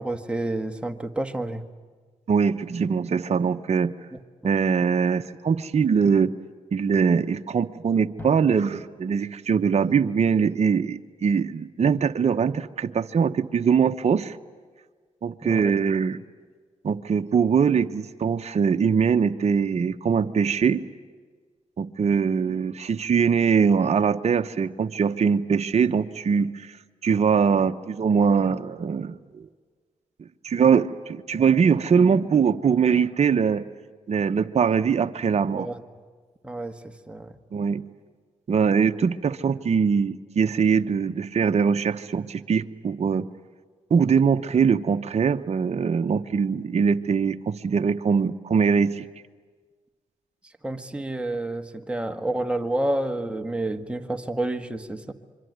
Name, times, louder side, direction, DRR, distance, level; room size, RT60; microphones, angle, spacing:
voice 1, 0.0-1.6 4.1-4.5 15.4-15.7 35.5-35.8 36.4-37.3 50.6-55.1, right 1 dB, 10° right, 5 dB, 1.6 m, -29 dB
voice 2, 2.3-3.9 4.4-6.3 6.7-14.4 15.2-16.2 16.8-20.8 21.8-26.8 27.0-29.5 30.2-33.6 34.1-35.7 37.5-37.8 38.5-43.3 43.9-49.0, right 6 dB, 50° right, 8 dB, 0.9 m, -22 dB
Drum, 8.2-10.9, left 1 dB, 15° left, 6.5 m, -46 dB
26.5 x 23.5 x 9.5 m, 1.5 s
supercardioid pair, 55°, 14 cm